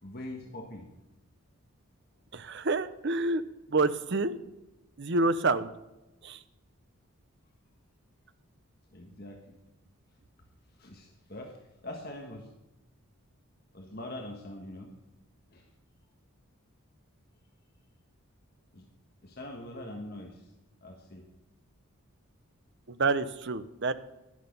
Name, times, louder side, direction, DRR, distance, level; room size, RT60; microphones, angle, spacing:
voice 1, 0.0-0.9 8.9-9.6 10.7-11.5 11.8-12.5 13.7-14.9 15.5-15.7 18.7-18.9 19.2-20.5 20.8-21.3, left 1 dB, 45° left, 2 dB, 1.5 m, -43 dB
voice 2, 2.3-3.4 3.7-4.4 5.0-5.7 6.2-6.4 22.9-23.9, right 3 dB, 50° right, 13 dB, 0.7 m, -28 dB
11.0 x 11.0 x 5.4 m, 0.98 s
head